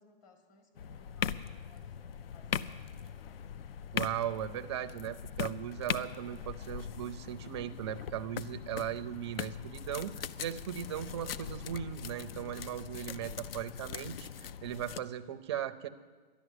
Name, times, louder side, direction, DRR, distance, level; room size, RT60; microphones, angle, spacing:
voice 1, 0.0-2.0 2.3-3.6, left 4 dB, 30° left, 4 dB, 1.9 m, -63 dB
sound 1, 0.8-15.0, left 8 dB, 70° left, 0.6 m, -40 dB
voice 2, 3.9-14.3 14.6-15.9, right 10 dB, 30° right, 10 dB, 0.5 m, -38 dB
11.5 x 11.0 x 8.0 m, 1.4 s
hypercardioid pair, 165°, 30 cm